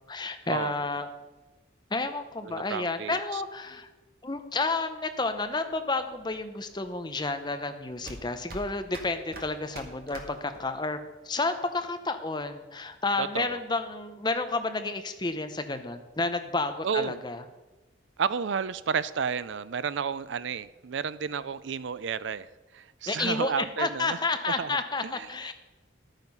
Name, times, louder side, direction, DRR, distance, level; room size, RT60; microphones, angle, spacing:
voice 1, 0.1-1.1 1.9-3.9 4.2-11.0 11.2-17.4 23.1-25.5, left 3 dB, 20° left, 8 dB, 0.8 m, -31 dB
voice 2, 2.4-3.4 13.2-13.6 16.8-17.2 18.2-22.5 22.7-24.2 24.5-25.3, right 6 dB, 70° right, 16 dB, 0.4 m, -32 dB
sound 1, 5.5-11.0, right 1 dB, 50° right, 1.8 m, -46 dB
11.5 x 9.1 x 5.5 m, 1.2 s
head